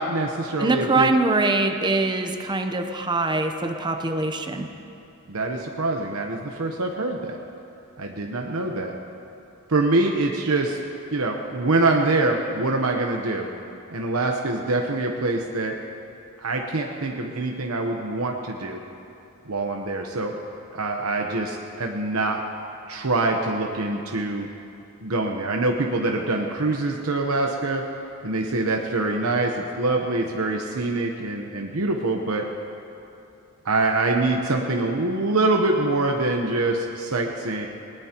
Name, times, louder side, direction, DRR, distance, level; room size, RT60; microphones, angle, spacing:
voice 1, 0.0-1.1 5.3-7.4 8.0-8.9 9.7-10.8 11.1-13.5 13.9-15.8 16.4-18.8 19.5-20.4 20.7-22.4 22.9-24.5 25.0-27.8 28.2-32.5 33.6-37.7, right 2 dB, 80° right, 2 dB, 1.0 m, -24 dB
voice 2, 0.6-4.7, right 2 dB, 20° right, 5 dB, 0.8 m, -23 dB
19.5 x 19.0 x 3.0 m, 2.7 s
head